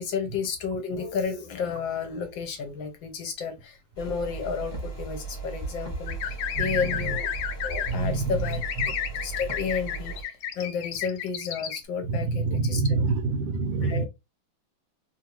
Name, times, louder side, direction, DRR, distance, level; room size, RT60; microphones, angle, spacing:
voice 1, 0.0-7.3 7.6-13.0 13.8-14.1, left 6 dB, 70° left, 1.3 m, -32 dB
sound 1, 4.0-10.2, right 4 dB, 15° left, 0.9 m, -36 dB
sound 2, 6.1-7.9 8.4-11.8, left 9 dB, 85° left, 0.9 m, -31 dB
voice 2, 6.5-7.2 7.9-8.4 8.8-8.9 12.0-14.1, right 4 dB, 80° right, 1.5 m, -27 dB
3.4 x 2.6 x 2.8 m
omnidirectional pair, 2.4 m